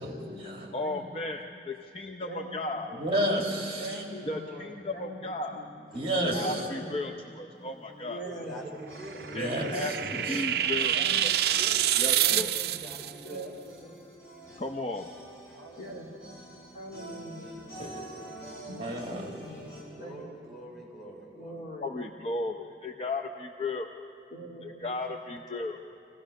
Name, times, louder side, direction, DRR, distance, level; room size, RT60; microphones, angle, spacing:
voice 1, 0.0-0.7 3.0-4.0 5.9-6.7 9.3-10.7 17.8-18.0 18.8-19.4, right 1 dB, 30° right, 0 dB, 2.0 m, -31 dB
voice 2, 0.7-2.9 4.3-5.6 6.4-8.2 9.3-9.9 10.3-11.3 12.0-12.5 14.6-15.1 21.8-23.9 24.6-25.8, left 2 dB, 35° left, 2 dB, 0.6 m, -35 dB
voice 3, 2.3-3.2 3.8-5.2 5.5-5.7 6.3-7.1 8.0-8.5 9.7-10.4 11.0-11.4 12.2-12.7 13.2-14.0 15.8-16.1 16.7-17.5 18.7-19.7 20.0-20.6 21.3-21.9 24.3-24.7, right 1 dB, 50° left, -2 dB, 2.5 m, -42 dB
sound 1, 7.5-19.8, equal, 15° left, 6.3 m, -47 dB
voice 4, 8.2-9.2 10.2-10.3 10.6-11.0 11.5-12.3 12.6-13.5 15.5-16.1 17.7-18.4 19.9-21.6, right 1 dB, ahead, -7 dB, 5.0 m, -45 dB
sound 2, 9.0-13.1, right 11 dB, 60° right, 0.4 m, -27 dB
25.5 x 16.5 x 6.4 m, 2.6 s
head